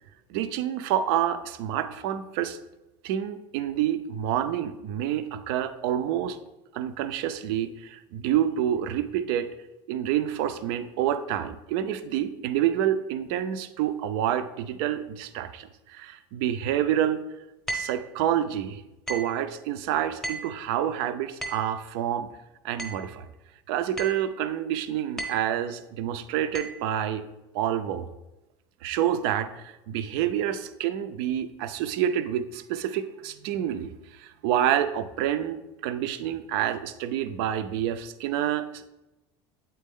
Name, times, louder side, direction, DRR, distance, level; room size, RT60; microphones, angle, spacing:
voice 1, 0.3-2.6 3.0-6.4 6.7-9.5 9.9-17.2 17.7-18.8 19.1-22.3 22.6-23.3 23.7-27.2 27.5-28.1 28.8-38.9, right 10 dB, 80° right, 10 dB, 0.5 m, -28 dB
sound 1, 17.7-18.1 19.1-19.4 20.2-20.6 21.4-21.7 22.8-23.1 24.0-24.3 25.2-25.5 26.5-26.8, right 2 dB, 5° left, 0.7 m, -35 dB
8.2 x 4.3 x 3.6 m, 0.98 s
cardioid pair, 160°, 12 cm